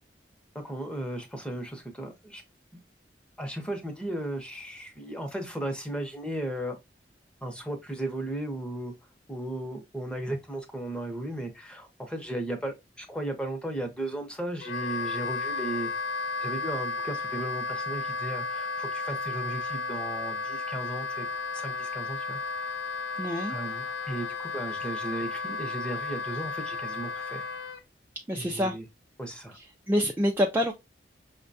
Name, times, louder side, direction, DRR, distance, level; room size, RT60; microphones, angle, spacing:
voice 1, 0.6-2.4 3.4-6.8 7.4-8.9 9.3-15.9 16.4-21.3 21.5-22.4 22.7-22.8 23.5-27.4 28.4-28.8 29.2-29.6, right 1 dB, 5° left, 0.7 m, -35 dB
Wind instrument woodwind instrument, 14.6-27.8, left 3 dB, 75° left, 0.4 m, -33 dB
voice 2, 23.2-23.6 28.3-28.8 29.5-30.7, equal, 10° right, 0.3 m, -27 dB
5.4 x 2.2 x 2.6 m
head